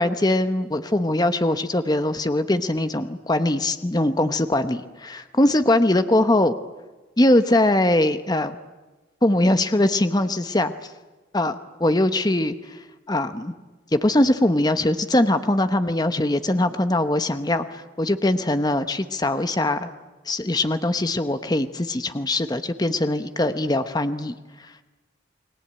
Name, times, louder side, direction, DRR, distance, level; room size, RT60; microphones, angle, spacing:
voice 1, 0.0-6.5 7.2-8.5 9.2-10.7 11.3-11.5 11.8-12.8 13.1-13.5 13.9-19.9 20.3-24.4, left 1 dB, 20° left, 10 dB, 1.0 m, -21 dB
29.5 x 21.0 x 8.9 m, 1.2 s
head